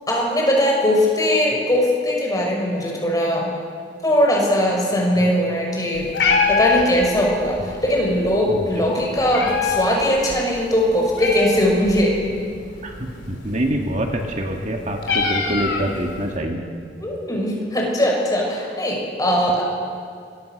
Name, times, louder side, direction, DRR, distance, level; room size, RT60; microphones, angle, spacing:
voice 1, 0.1-3.5 4.0-6.1 6.5-12.2 17.0-19.6, equal, 20° left, -1 dB, 6.0 m, -20 dB
Meow, 5.9-16.4, left 5 dB, 75° left, 3.8 m, -26 dB
voice 2, 8.5-8.9 12.8-16.6, right 1 dB, 45° right, 2 dB, 2.0 m, -26 dB
26.5 x 23.0 x 6.6 m, 2.2 s
head